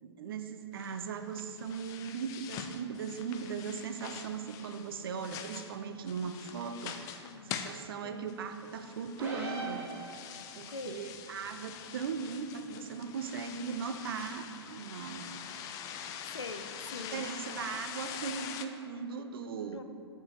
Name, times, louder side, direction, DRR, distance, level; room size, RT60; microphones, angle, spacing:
voice 1, 0.0-9.9 10.6-15.3 16.9-19.8, right 6 dB, 55° right, 8 dB, 0.5 m, -38 dB
sound 1, 0.7-18.7, left 8 dB, 25° left, 0.4 m, -45 dB
voice 2, 7.2-7.5 8.0-8.3 10.7-11.0 16.2-17.3 19.7-19.8, left 3 dB, 80° left, 8 dB, 0.5 m, -43 dB
sound 2, 9.2-10.6, right 2 dB, 15° right, 1.7 m, -40 dB
13.5 x 4.5 x 3.2 m, 2.6 s
figure-of-eight pair, 105°, 14 cm